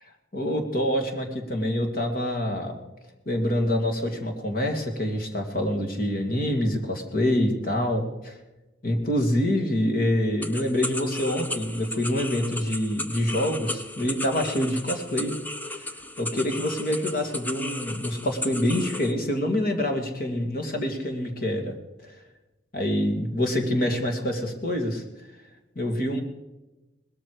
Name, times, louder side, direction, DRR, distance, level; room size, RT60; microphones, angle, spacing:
voice 1, 0.3-2.8 3.3-8.4 8.8-15.3 15.8-15.9 16.2-21.7 22.7-25.0 25.8-26.2, left 1 dB, 50° left, 3 dB, 2.6 m, -26 dB
sound 1, 10.4-19.1, left 1 dB, 10° left, 0.7 m, -35 dB
20.5 x 13.0 x 5.0 m, 1.0 s
head